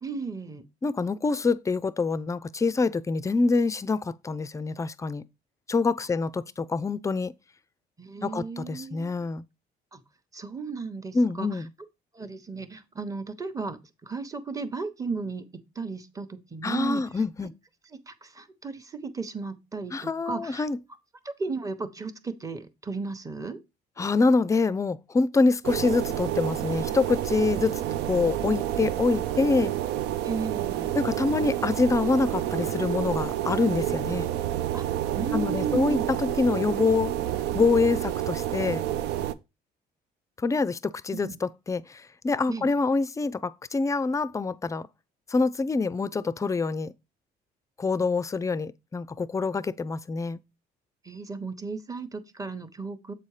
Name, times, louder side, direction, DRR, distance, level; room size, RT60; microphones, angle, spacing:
voice 1, 0.0-0.6 8.0-9.3 9.9-10.0 10.3-11.6 12.1-15.4 15.7-17.2 17.9-20.7 21.2-23.6 30.2-31.0 34.7-36.1 41.1-41.4 42.5-42.7 51.0-53.1, right 4 dB, 20° right, 0.9 m, -35 dB
voice 2, 0.8-5.2 5.7-7.3 8.2-9.4 11.1-11.7 16.6-17.5 19.9-20.8 24.0-27.8 28.1-29.7 30.9-34.3 35.3-37.1 37.5-38.8 40.4-44.9 45.3-46.9 47.8-50.4, left 4 dB, 20° left, 0.4 m, -26 dB
sound 1, 25.6-39.3, right 12 dB, 80° right, 0.6 m, -29 dB
7.7 x 4.2 x 4.9 m
cardioid pair, 110°, 17 cm